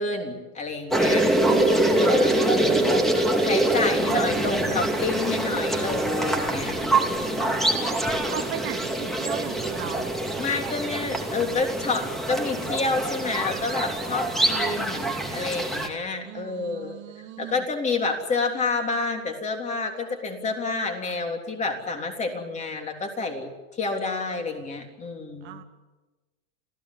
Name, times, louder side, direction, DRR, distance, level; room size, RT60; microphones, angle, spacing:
voice 1, 0.0-1.3 2.0-2.8 3.5-6.8 7.1-7.7 10.4-17.0 17.4-23.5 23.8-25.6, left 3 dB, 20° left, 4 dB, 3.5 m, -29 dB
sound 1, 0.9-15.9, right 1 dB, ahead, 2.7 m, -24 dB
voice 2, 1.4-2.9 4.1-4.6 8.0-10.1 14.6-15.2 16.2-17.6 25.4-25.6, right 11 dB, 30° right, 7 dB, 1.2 m, -38 dB
27.0 x 16.0 x 9.9 m, 1.2 s
supercardioid pair, 150°, 37 cm